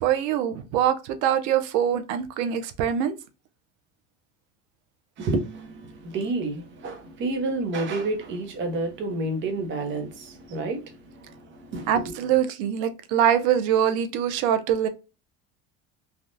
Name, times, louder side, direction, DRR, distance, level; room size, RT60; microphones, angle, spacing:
voice 1, 0.0-3.1 11.9-14.9, right 9 dB, 75° right, 0.6 m, -23 dB
voice 2, 5.2-12.4, right 2 dB, 40° right, 0.9 m, -30 dB
3.4 x 2.4 x 2.6 m
cardioid pair, 145°, 29 cm